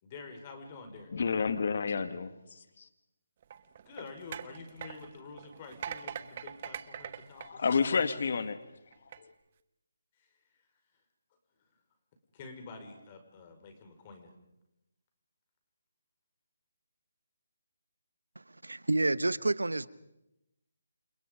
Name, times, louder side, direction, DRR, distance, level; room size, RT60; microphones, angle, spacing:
voice 1, 0.0-1.1 3.8-7.8 10.2-10.3 12.3-14.3, left 4 dB, 30° left, 5 dB, 5.0 m, -48 dB
voice 2, 1.1-2.3 7.4-8.6, left 5 dB, 55° left, 10 dB, 2.0 m, -29 dB
sound 1, 3.4-8.4 8.9-9.2, right 8 dB, 40° right, 1.3 m, -43 dB
voice 3, 18.6-19.9, right 2 dB, 85° right, 17 dB, 1.1 m, -28 dB
29.0 x 29.0 x 5.3 m, 0.90 s
figure-of-eight pair, 150°, 0 cm